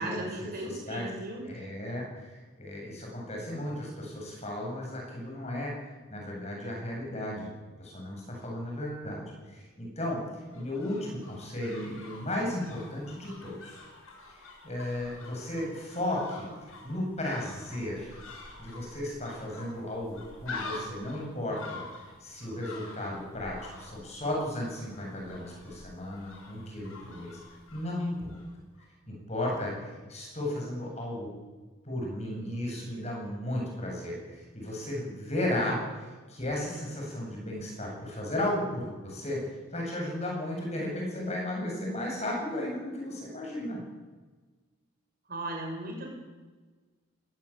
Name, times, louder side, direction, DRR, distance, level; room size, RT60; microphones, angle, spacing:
voice 1, 0.0-1.4 45.3-46.1, right 1 dB, 45° right, 0 dB, 6.7 m, -36 dB
voice 2, 1.4-5.7 6.1-7.5 7.8-10.2 10.5-13.8 14.3-16.5 16.8-18.2 18.6-21.8 22.2-27.4 27.7-28.4 29.1-31.3 31.8-39.4 39.7-43.8, left 1 dB, 30° left, -1 dB, 8.0 m, -34 dB
sound 1, 10.3-28.5 28.7-28.8, left 3 dB, 80° left, 7.6 m, -47 dB
19.5 x 19.5 x 8.8 m, 1.3 s
head